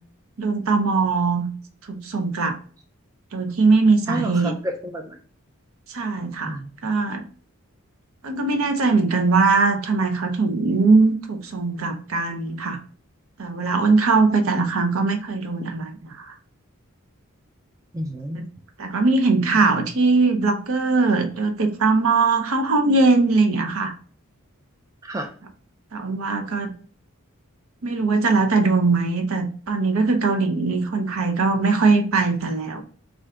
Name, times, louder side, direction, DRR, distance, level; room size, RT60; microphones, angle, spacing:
voice 1, 0.4-1.5 1.9-2.6 3.3-4.5 5.9-7.2 8.2-12.8 13.4-16.3 18.3-18.4 18.8-23.9 25.9-26.7 27.8-32.8, right 3 dB, 80° right, 6 dB, 0.6 m, -21 dB
voice 2, 4.1-5.2 6.5-6.7 17.9-18.4 25.0-25.3, right 1 dB, 15° right, 3 dB, 0.3 m, -30 dB
3.3 x 2.5 x 3.6 m, 0.42 s
head